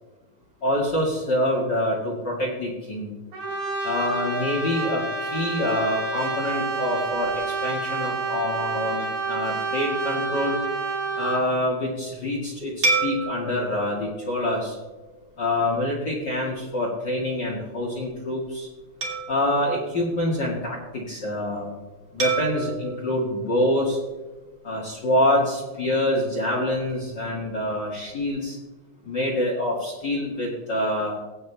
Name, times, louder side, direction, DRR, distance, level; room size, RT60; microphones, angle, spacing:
voice 1, 0.6-3.1 3.8-7.3 7.6-10.6 11.2-14.7 15.4-18.7 19.3-21.7 22.1-24.0 24.6-28.6 29.0-31.2, left 1 dB, 75° left, -5 dB, 0.9 m, -26 dB
Brass instrument, 3.3-11.5, right 3 dB, 75° right, 5.4 m, -29 dB
sound 1, 12.8-15.5 16.1-16.3 19.0-20.8 22.2-24.5, right 3 dB, 40° right, 1.8 m, -31 dB
18.5 x 8.6 x 3.4 m, 1.2 s
omnidirectional pair, 5.3 m